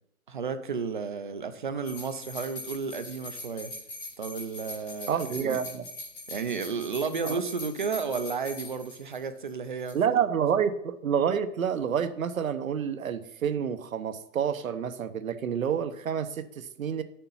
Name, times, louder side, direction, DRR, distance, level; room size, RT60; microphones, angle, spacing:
voice 1, 0.3-3.7 4.2-5.6 6.3-10.0, right 5 dB, 35° right, 10 dB, 0.6 m, -33 dB
sound 1, 1.8-9.5 9.8-9.9, left 2 dB, 15° left, 0.9 m, -42 dB
voice 2, 5.1-5.9 7.2-7.4 9.9-17.0, right 8 dB, 65° right, 10 dB, 1.0 m, -28 dB
9.1 x 6.8 x 5.6 m, 0.77 s
hypercardioid pair, 170°, 44 cm